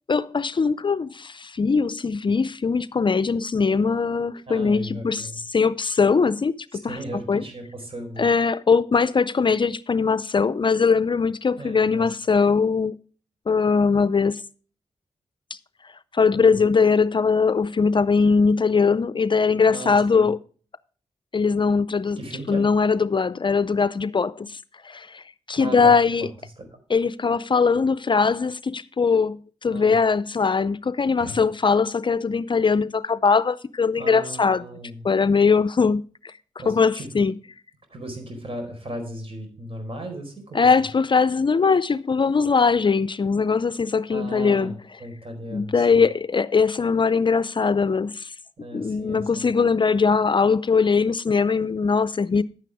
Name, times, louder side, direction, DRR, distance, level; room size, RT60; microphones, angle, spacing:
voice 1, 0.1-7.0 7.3-7.4 8.2-12.9 13.5-14.4 16.1-20.4 21.3-22.2 22.5-24.6 24.8-26.3 26.9-34.6 35.0-36.3 36.7-37.4 40.5-44.7 45.5-48.3 48.7-52.4, left 5 dB, 40° left, 0.5 m, -21 dB
voice 2, 4.5-5.4 6.7-8.2 11.6-12.1 16.3-16.6 19.7-20.3 22.2-22.7 25.6-25.9 26.2-26.3 26.6-26.7 29.7-29.9 31.2-31.4 34.0-35.0 36.6-37.1 37.9-40.6 44.1-44.7 45.0-46.0 48.6-49.4, right 1 dB, 50° right, 4.4 m, -36 dB
10.5 x 9.1 x 3.5 m
supercardioid pair, 45°, 12 cm